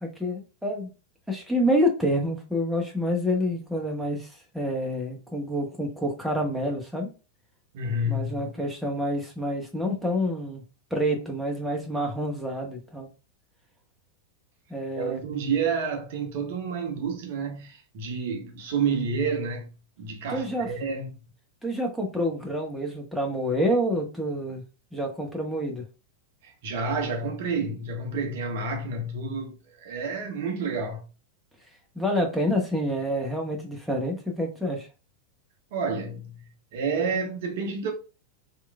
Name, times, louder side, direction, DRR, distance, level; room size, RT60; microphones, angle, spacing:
voice 1, 0.0-0.9 1.3-7.1 8.1-10.6 10.9-13.1 14.7-15.2 20.3-20.7 21.6-24.6 24.9-25.8 32.0-34.9, equal, ahead, 0.7 m, -28 dB
voice 2, 7.7-8.5 14.9-19.7 20.0-21.1 26.4-31.0 35.7-36.4 36.7-37.9, right 4 dB, 50° right, 0.6 m, -29 dB
3.0 x 2.2 x 2.2 m
figure-of-eight pair, 90°, 0 cm